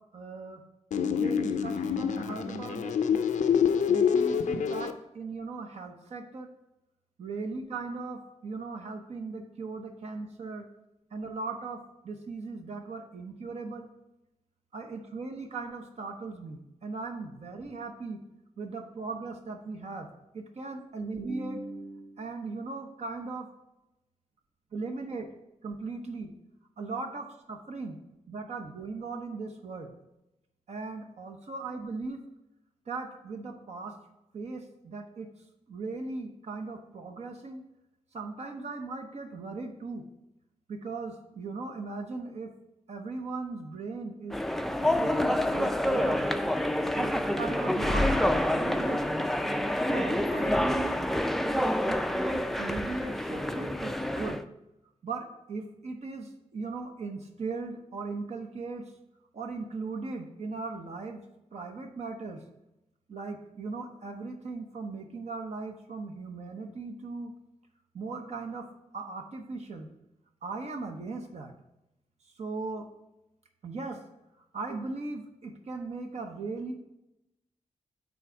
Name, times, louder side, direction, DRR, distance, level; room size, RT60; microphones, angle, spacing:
voice 1, 0.1-0.6 1.1-3.2 3.9-6.5 7.2-10.7 11.1-11.8 12.0-13.9 14.7-18.2 18.6-20.1 20.3-23.5 24.7-25.3 25.6-26.3 26.8-28.0 28.3-29.9 30.7-32.2 32.9-33.9 34.3-35.3 35.7-37.6 38.1-40.1 40.7-42.5 42.9-44.4 44.8-46.3 46.9-49.0 49.8-51.0 51.5-54.4 55.0-58.8 59.3-61.2 61.5-62.4 63.1-67.3 67.9-68.7 68.9-69.9 70.4-71.5 72.4-72.8 73.6-74.0 74.5-76.7, right 3 dB, 65° right, 4 dB, 0.9 m, -38 dB
sound 1, 0.9-4.9, left 7 dB, 85° left, 0.5 m, -26 dB
sound 2, 44.3-54.4, left 1 dB, ahead, 0.3 m, -27 dB
7.4 x 4.0 x 4.6 m, 0.89 s
wide cardioid pair, 105°, 12 cm